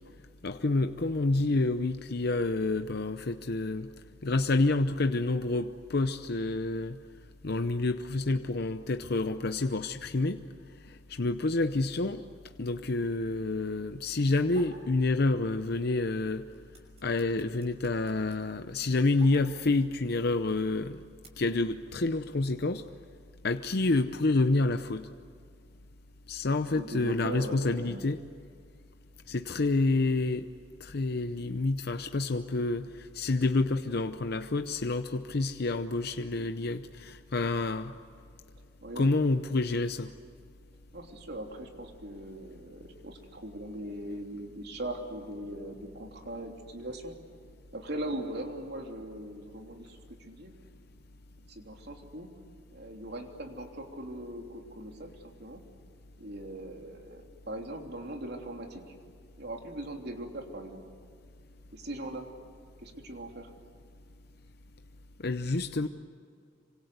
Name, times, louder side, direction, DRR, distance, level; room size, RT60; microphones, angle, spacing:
voice 1, 0.4-3.9 4.2-7.0 7.4-10.4 10.9-12.2 12.6-16.4 17.0-21.0 21.4-22.8 23.4-25.1 26.3-28.2 29.3-30.5 30.8-37.9 39.0-40.1 65.2-65.9, left 2 dB, 60° left, 8 dB, 0.7 m, -28 dB
sound 1, 14.5-14.9 15.3-16.0 16.3-19.9 20.6-21.3, right 3 dB, 35° right, 5.7 m, -52 dB
voice 2, 26.6-28.0 38.8-39.1 40.9-47.1 47.7-50.5 51.5-52.3 52.7-55.6 56.2-58.9 59.4-60.8 61.7-62.3 62.8-63.5, right 1 dB, 60° right, 2 dB, 3.3 m, -40 dB
27.5 x 25.0 x 8.1 m, 2.2 s
head